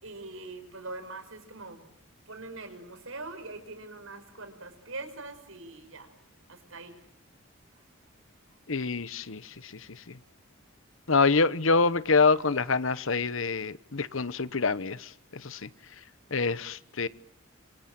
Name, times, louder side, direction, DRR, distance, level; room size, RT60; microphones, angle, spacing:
voice 1, 0.0-1.8 2.3-6.1 6.7-7.0, right 2 dB, 80° right, 5.6 m, -42 dB
voice 2, 8.7-9.7 11.1-15.1 15.4-15.7 16.3-17.1, left 4 dB, 75° left, 1.0 m, -26 dB
27.0 x 26.0 x 7.6 m
head